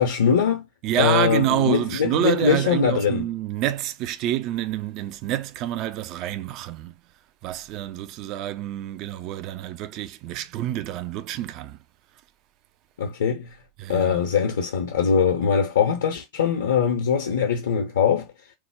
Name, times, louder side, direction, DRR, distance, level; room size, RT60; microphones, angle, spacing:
voice 1, 0.0-0.6 1.0-3.3 13.0-13.5 13.9-18.3, left 7 dB, 65° left, 0.6 m, -22 dB
voice 2, 0.8-6.9 7.4-11.8 13.8-14.2, right 13 dB, 40° right, 0.3 m, -27 dB
3.1 x 2.1 x 3.4 m
figure-of-eight pair, 90°, 0 cm